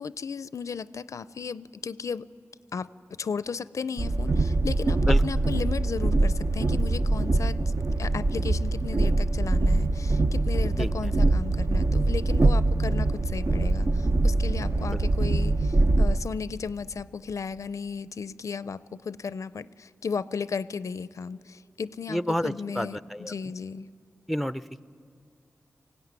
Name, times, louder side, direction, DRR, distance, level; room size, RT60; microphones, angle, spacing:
voice 1, 0.0-2.3 2.7-7.7 8.0-23.0 23.3-23.9, left 5 dB, 75° left, 17 dB, 0.4 m, -35 dB
Train, 4.0-16.2, right 2 dB, 55° right, 0.6 m, -23 dB
voice 2, 22.1-23.3 24.3-24.8, equal, ahead, 15 dB, 0.5 m, -29 dB
19.5 x 16.0 x 9.5 m, 2.3 s
cardioid pair, 55°, 5 cm